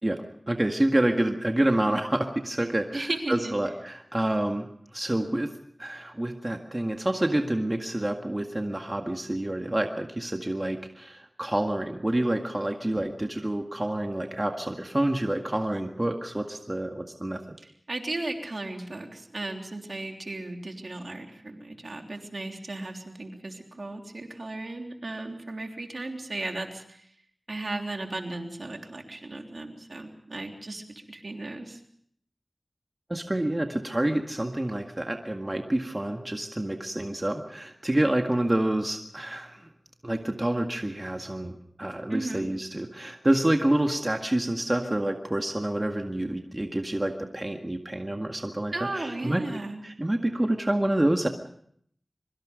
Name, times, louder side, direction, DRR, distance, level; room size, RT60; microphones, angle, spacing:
voice 1, 0.0-5.5 5.8-17.5 33.1-39.7 40.0-49.4 49.8-51.3, right 1 dB, 30° right, 3 dB, 1.9 m, -28 dB
voice 2, 2.9-3.5 17.6-27.1 27.5-31.8 42.1-42.5 48.7-49.8, right 2 dB, 65° right, 3 dB, 3.4 m, -35 dB
24.5 x 23.5 x 5.2 m, 0.66 s
wide cardioid pair, 50°, 0 cm